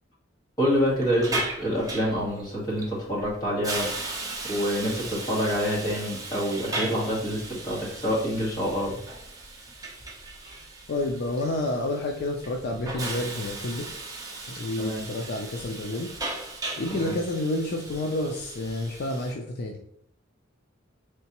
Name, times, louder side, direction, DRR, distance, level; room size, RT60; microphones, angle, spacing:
voice 1, 0.6-3.9 4.5-8.9 14.8-15.0 17.0-17.1, equal, 20° left, -5 dB, 1.5 m, -27 dB
Hiss, 0.7-19.3, right 2 dB, 20° right, 0.7 m, -37 dB
voice 2, 10.9-13.8 14.6-16.1 16.8-19.8, left 1 dB, 55° left, 2 dB, 0.4 m, -29 dB
3.9 x 3.3 x 2.9 m, 0.68 s
head